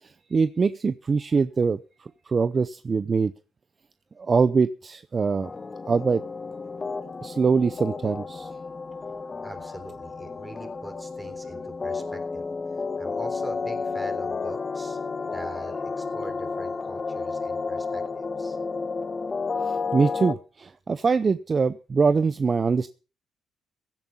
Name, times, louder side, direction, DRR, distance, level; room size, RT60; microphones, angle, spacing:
voice 1, 0.0-3.3 4.2-5.5 5.9-6.2 7.2-8.5 19.6-22.9, right 5 dB, 35° right, 14 dB, 0.6 m, -23 dB
sound 1, 5.4-20.3, left 4 dB, 30° left, 1.1 m, -32 dB
voice 2, 9.4-12.5 12.8-15.0 15.3-18.6, right 1 dB, 15° right, 8 dB, 3.5 m, -42 dB
16.0 x 9.0 x 5.5 m, 0.36 s
cardioid pair, 90°, 0 cm